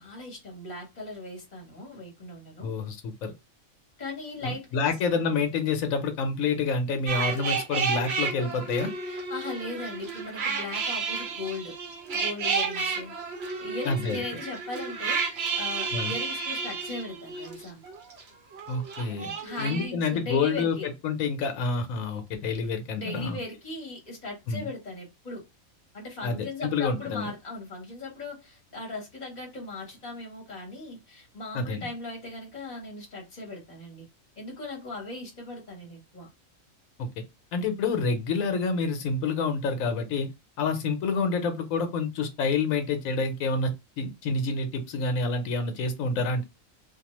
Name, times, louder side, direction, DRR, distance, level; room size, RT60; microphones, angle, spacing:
voice 1, 0.0-2.7 4.0-4.7 9.1-11.8 12.1-13.1 13.6-17.8 19.4-20.9 22.9-25.4 25.9-34.0 34.4-36.3, left 2 dB, 35° left, 1.2 m, -38 dB
voice 2, 2.6-3.3 4.4-8.9 13.8-14.2 15.9-16.1 18.7-19.3 19.6-23.4 24.5-24.6 26.2-27.3 31.5-31.9 37.0-37.2 37.5-40.3 40.6-46.4, left 4 dB, 80° left, 1.1 m, -28 dB
sound 1, 7.1-18.2 18.5-19.9, right 5 dB, 55° right, 0.9 m, -31 dB
2.5 x 2.2 x 2.9 m
omnidirectional pair, 1.4 m